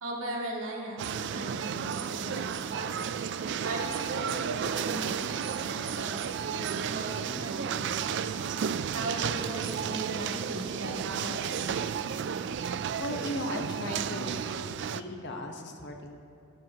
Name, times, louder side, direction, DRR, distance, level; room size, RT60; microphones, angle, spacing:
voice 1, 0.0-2.9 3.6-8.1 8.9-11.7, right 1 dB, 80° right, -3 dB, 2.2 m, -38 dB
sound 1, 1.0-15.0, right 7 dB, 60° right, 0.3 m, -33 dB
voice 2, 13.0-14.6 14.9-16.3, left 1 dB, 55° left, 3 dB, 1.1 m, -37 dB
15.5 x 12.5 x 2.9 m, 2.6 s
head